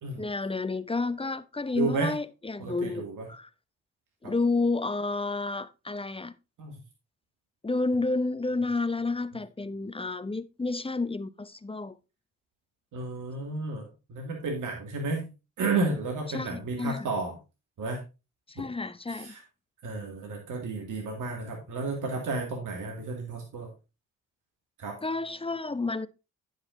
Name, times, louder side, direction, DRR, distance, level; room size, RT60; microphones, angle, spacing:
voice 1, 0.2-3.5 4.2-6.3 7.6-12.0 16.3-17.1 18.5-19.3 25.0-26.1, left 3 dB, 15° left, 0.8 m, -30 dB
voice 2, 1.7-2.1 2.6-3.3 4.2-4.3 6.6-6.7 12.9-15.3 15.6-17.3 17.8-18.0 19.1-19.4 19.8-23.7 24.8-25.0, right 3 dB, 65° right, 2.2 m, -32 dB
9.8 x 6.4 x 3.8 m
hypercardioid pair, 45°, 33 cm